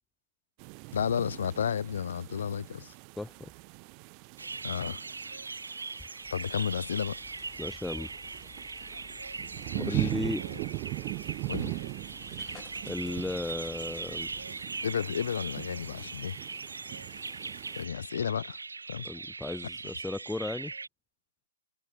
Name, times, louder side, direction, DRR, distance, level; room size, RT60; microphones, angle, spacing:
sound 1, 0.6-17.9, right 40 dB or more, 35° right, 0.5 m, -40 dB
voice 1, 0.9-2.9 4.6-5.0 6.3-7.2 9.7-10.1 10.4-10.6 11.5-11.9 14.8-16.4 17.8-18.6 18.9-19.1 19.8-19.9, left 8 dB, 65° left, 0.7 m, -32 dB
voice 2, 3.2-3.5 7.6-8.1 9.8-10.4 12.9-14.3 19.0-20.7, left 2 dB, 5° left, 0.8 m, -35 dB
sound 2, 4.4-20.9, right 4 dB, 85° right, 0.6 m, -40 dB
sound 3, 6.2-14.5, left 10 dB, 20° left, 1.8 m, -56 dB
figure-of-eight pair, 125°, 0 cm